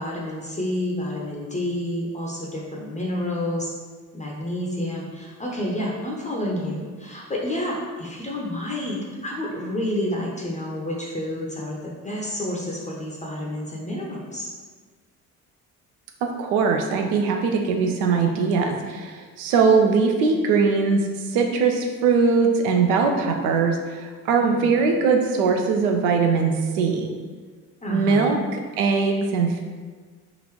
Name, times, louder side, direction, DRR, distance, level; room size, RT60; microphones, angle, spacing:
voice 1, 0.0-3.7 4.1-14.5 24.4-24.8 27.8-28.3, left 1 dB, 15° left, -3 dB, 0.7 m, -29 dB
voice 2, 16.2-21.0 21.3-27.1 27.9-28.4 28.8-29.6, right 5 dB, 65° right, 3 dB, 0.6 m, -21 dB
3.8 x 2.5 x 3.1 m, 1.5 s
figure-of-eight pair, 50°, 45 cm